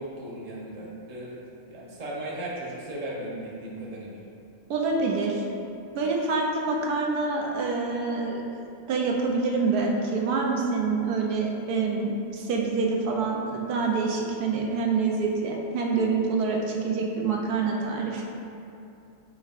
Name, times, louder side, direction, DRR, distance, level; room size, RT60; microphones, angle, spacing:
voice 1, 0.0-1.4 1.7-4.2, right 1 dB, 30° right, -5 dB, 0.9 m, -36 dB
voice 2, 4.7-5.4 5.9-8.4 8.9-18.2, right 4 dB, 80° right, -1 dB, 1.3 m, -26 dB
9.5 x 4.7 x 2.5 m, 2.7 s
omnidirectional pair, 1.6 m